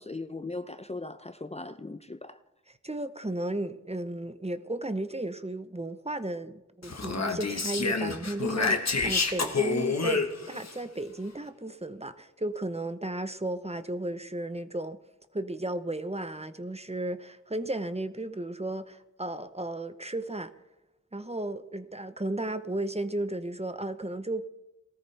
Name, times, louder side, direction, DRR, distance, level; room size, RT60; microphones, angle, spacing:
voice 1, 0.0-2.4 8.7-8.8, left 2 dB, 20° left, 0.6 m, -38 dB
voice 2, 2.7-15.0 15.3-20.5 21.1-24.4, right 1 dB, 20° right, 0.9 m, -34 dB
Speech, 6.8-10.7, left 4 dB, 60° left, 1.3 m, -28 dB
18.5 x 13.5 x 3.4 m
wide cardioid pair, 50°, 29 cm